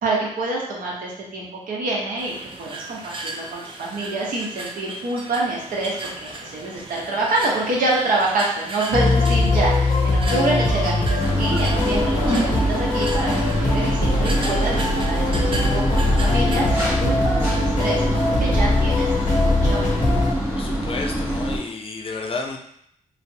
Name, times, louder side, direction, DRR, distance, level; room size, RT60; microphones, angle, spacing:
voice 1, 0.0-19.1 19.4-19.9, right 2 dB, 85° right, -4 dB, 0.8 m, -26 dB
sound 1, 2.2-17.0, right 2 dB, 40° right, 0.4 m, -36 dB
sound 2, 8.9-20.3, left 2 dB, 70° left, 0.7 m, -21 dB
sound 3, 11.2-21.6, equal, 15° right, 1.0 m, -25 dB
voice 2, 20.5-22.6, left 3 dB, 40° left, 1 dB, 0.5 m, -31 dB
3.2 x 2.0 x 2.6 m, 0.70 s
cardioid pair, 75°, 14 cm